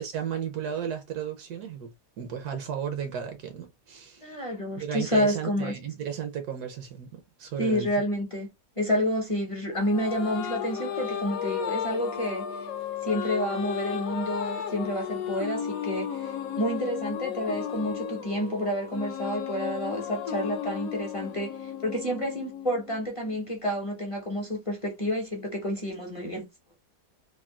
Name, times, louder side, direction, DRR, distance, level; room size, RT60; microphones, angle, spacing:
voice 1, 0.0-1.9 2.2-4.4 4.8-7.9, right 8 dB, 70° right, 1.1 m, -34 dB
voice 2, 4.2-5.7 7.6-8.5 8.8-12.7 13.0-26.5, equal, 30° left, 0.6 m, -29 dB
sound 1, 9.7-23.3, left 9 dB, 65° left, 0.9 m, -34 dB
3.6 x 2.2 x 2.2 m
omnidirectional pair, 1.8 m